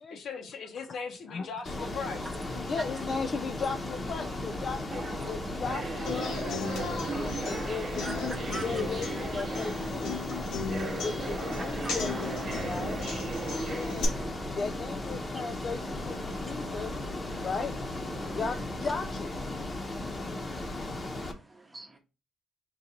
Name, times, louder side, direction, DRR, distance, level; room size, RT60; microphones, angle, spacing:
voice 1, 0.1-2.3, left 5 dB, 65° left, 1.0 m, -38 dB
Ocean, 1.7-21.3, left 2 dB, 30° left, 1.0 m, -36 dB
voice 2, 2.7-6.3 7.2-10.3 11.0-13.0 13.7-14.1 14.4-16.9 17.4-17.7 18.3-19.5, left 4 dB, 50° left, 0.4 m, -36 dB
sound 1, 3.9-18.9, right 4 dB, 45° right, 0.7 m, -40 dB
Human voice / Acoustic guitar, 6.1-14.0, left 4 dB, 85° left, 1.3 m, -37 dB
voice 3, 13.8-14.2 15.3-15.4 16.6-16.8 17.3-17.5 18.2-18.4 20.0-20.4 21.0-21.9, right 2 dB, 20° right, 0.9 m, -45 dB
3.9 x 2.5 x 4.4 m
cardioid pair, 90°, 0 cm